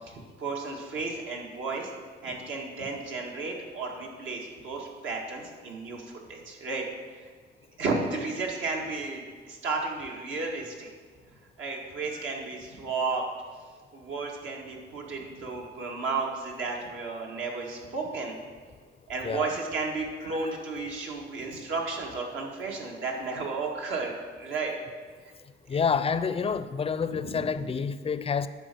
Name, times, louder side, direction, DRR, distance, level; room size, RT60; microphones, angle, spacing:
voice 1, 0.0-1.9 2.2-6.8 7.1-7.3 7.8-10.9 11.3-13.2 13.9-18.4 19.1-24.8 25.2-25.3 25.7-25.8 27.1-27.7, right 3 dB, 75° right, -1 dB, 1.9 m, -33 dB
voice 2, 25.7-28.5, left 6 dB, 30° left, 14 dB, 0.4 m, -28 dB
10.5 x 4.8 x 6.8 m, 1.5 s
cardioid pair, 90°, 20 cm